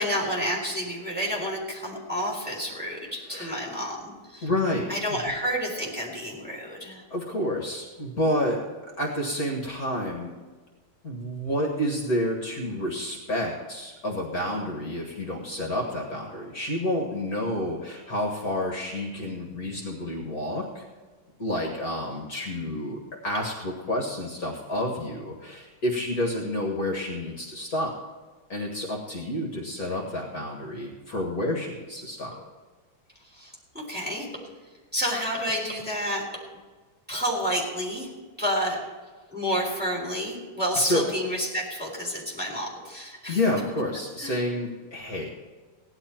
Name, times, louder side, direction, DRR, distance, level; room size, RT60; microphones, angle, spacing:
voice 1, 0.0-4.5 4.9-7.0 33.3-34.3 34.9-36.2 37.1-38.1 38.4-38.8 39.3-43.4 44.2-44.3, equal, 5° right, -3 dB, 3.6 m, -29 dB
voice 2, 4.4-5.2 7.1-8.6 9.0-10.3 11.0-20.9 21.4-28.0 28.5-32.4 38.7-38.8 40.8-41.0 43.3-45.3, left 1 dB, 50° left, 0 dB, 2.1 m, -29 dB
16.5 x 11.0 x 4.5 m, 1.4 s
omnidirectional pair, 2.1 m